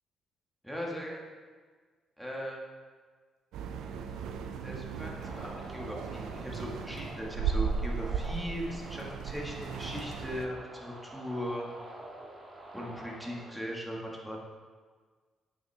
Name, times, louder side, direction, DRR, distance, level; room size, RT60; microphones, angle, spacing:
voice 1, 0.6-1.2 2.2-2.6 4.6-11.7 12.7-14.4, equal, ahead, -3 dB, 1.8 m, -39 dB
sound 1, 3.5-10.5, right 6 dB, 85° right, 0.5 m, -36 dB
sound 2, 5.2-13.5, right 1 dB, 30° right, 1.7 m, -47 dB
8.9 x 5.6 x 3.5 m, 1.5 s
cardioid pair, 90°, 0 cm